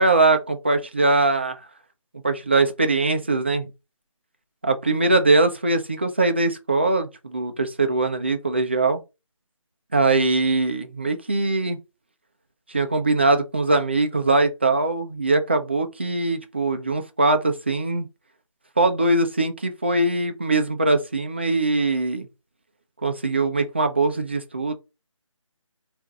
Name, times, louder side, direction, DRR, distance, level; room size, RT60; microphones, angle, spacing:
voice 1, 0.0-1.6 2.2-3.7 4.6-9.0 9.9-11.8 12.7-18.1 18.8-22.3 23.0-24.7, right 2 dB, 20° right, 0.4 m, -21 dB
4.3 x 2.5 x 3.7 m
figure-of-eight pair, 155°, 17 cm